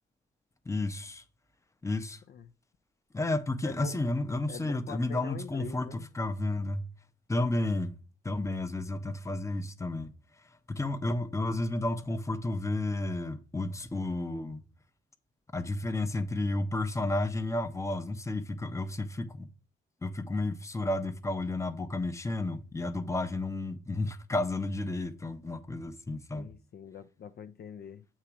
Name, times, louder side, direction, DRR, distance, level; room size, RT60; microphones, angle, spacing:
voice 1, 0.7-1.2 1.8-2.2 3.1-6.9 7.3-7.9 8.2-10.1 10.7-14.6 15.5-19.5 20.0-26.5, left 2 dB, 15° left, 0.7 m, -32 dB
voice 2, 3.6-4.0 4.5-6.1 26.3-28.1, left 7 dB, 50° left, 0.5 m, -44 dB
7.4 x 2.9 x 4.8 m
supercardioid pair, 60°, 21 cm